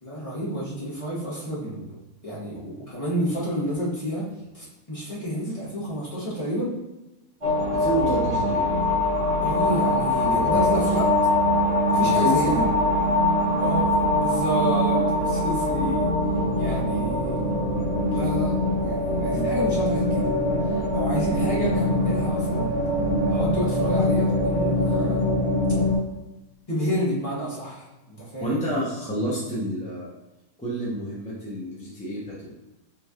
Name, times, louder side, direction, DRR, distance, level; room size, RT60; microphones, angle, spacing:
voice 1, 0.0-2.0 2.2-4.3 4.5-6.7 9.4-11.1 11.9-12.6 13.5-16.1 16.5-17.6 18.1-18.5 18.8-20.3 20.9-22.7 23.3-25.4 26.7-28.7, equal, 25° left, -7 dB, 1.2 m, -30 dB
sound 1, 7.4-26.0, left 1 dB, 25° right, 1.0 m, -23 dB
voice 2, 7.7-8.8 9.8-10.9 11.9-12.7 28.4-30.1 30.6-32.5, right 1 dB, 5° left, -6 dB, 0.6 m, -29 dB
5.9 x 3.3 x 2.5 m, 1.0 s
omnidirectional pair, 1.7 m